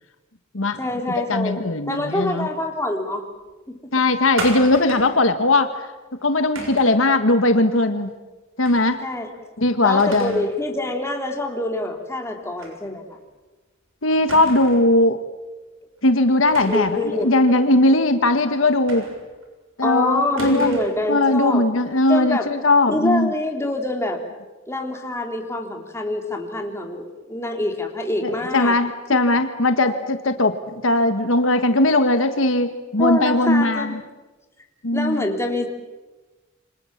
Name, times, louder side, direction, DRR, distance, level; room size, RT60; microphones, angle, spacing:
voice 1, 0.8-1.6 1.9-3.3 3.7-3.9 9.0-9.3 9.8-13.2 16.7-17.3 19.8-21.7 22.1-22.5 22.9-24.2 24.7-28.8 29.1-29.2 29.8-29.9 33.0-34.0 34.9-35.7, left 1 dB, 15° left, 3 dB, 3.2 m, -25 dB
voice 2, 1.3-2.5 3.9-5.9 6.2-8.1 8.6-9.0 9.6-10.4 14.0-15.2 16.0-19.1 19.8-20.8 21.1-23.3 28.2-30.5 30.8-34.0 34.8-35.2, left 2 dB, 70° left, 8 dB, 1.6 m, -19 dB
sound 1, 4.4-5.2 6.6-7.0 8.6-9.0 9.3-9.4 10.0-10.5 10.9-11.0 12.6-12.8 13.1-13.2 14.3-14.9 16.5-17.0 18.9-19.4 20.4-21.0, right 2 dB, 80° right, 6.8 m, -34 dB
28.0 x 25.5 x 7.4 m, 1.2 s
head